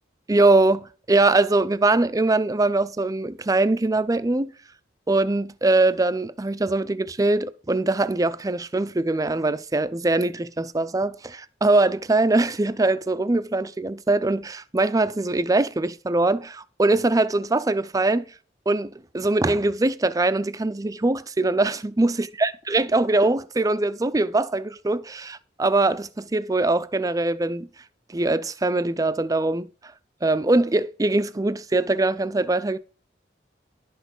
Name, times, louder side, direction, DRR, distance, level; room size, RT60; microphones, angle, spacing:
voice 1, 0.3-4.5 5.1-18.2 18.7-27.7 28.1-29.7 30.2-32.8, right 2 dB, 20° right, 0.5 m, -22 dB
11.0 x 6.0 x 5.3 m
head